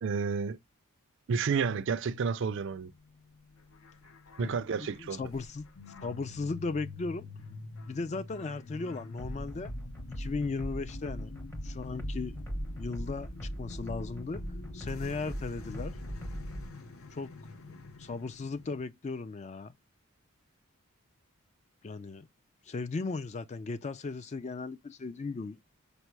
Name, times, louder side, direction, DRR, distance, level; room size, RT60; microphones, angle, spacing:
voice 1, 0.0-0.6 1.3-2.9 4.4-5.2, right 5 dB, 55° right, 0.4 m, -30 dB
sound 1, 2.5-18.9, left 4 dB, 70° left, 0.7 m, -47 dB
voice 2, 4.4-5.7 6.0-7.3 7.9-9.7 10.1-11.3 11.6-12.4 12.8-13.3 13.6-14.4 14.7-16.0 17.1-17.3 18.0-19.7 21.8-22.3 22.7-25.6, left 3 dB, 30° left, 0.3 m, -36 dB
sound 2, 9.2-16.7, equal, 10° left, 0.7 m, -40 dB
5.3 x 2.0 x 4.5 m
head